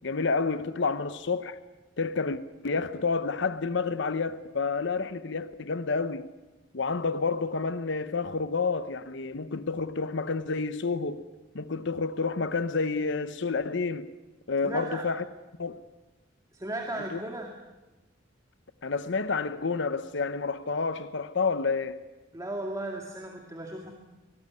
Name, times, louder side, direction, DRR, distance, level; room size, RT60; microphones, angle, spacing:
voice 1, 0.0-1.6 2.0-6.3 6.7-11.2 11.5-14.1 14.5-15.2 15.6-15.8 17.1-17.2 18.8-22.0, left 4 dB, 65° left, 0.9 m, -29 dB
voice 2, 14.6-15.1 16.5-17.5 22.3-23.9, right 1 dB, 15° right, 2.2 m, -36 dB
23.0 x 19.0 x 9.6 m
head